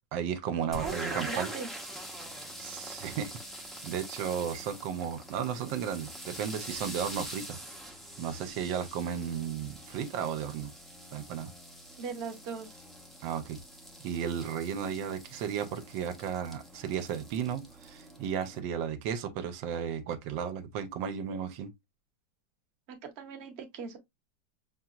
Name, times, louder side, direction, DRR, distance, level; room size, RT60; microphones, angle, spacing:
voice 1, 0.1-1.5 2.6-3.3 3.6-7.6 8.2-10.7 11.1-11.5 13.2-13.6 14.0-21.7, right 8 dB, 90° right, 1.3 m, -34 dB
sound 1, 0.7-18.6, right 1 dB, ahead, 0.3 m, -44 dB
voice 2, 0.8-1.7 12.0-12.8 22.9-24.0, right 6 dB, 45° right, 0.9 m, -39 dB
5.7 x 2.8 x 2.4 m
omnidirectional pair, 2.0 m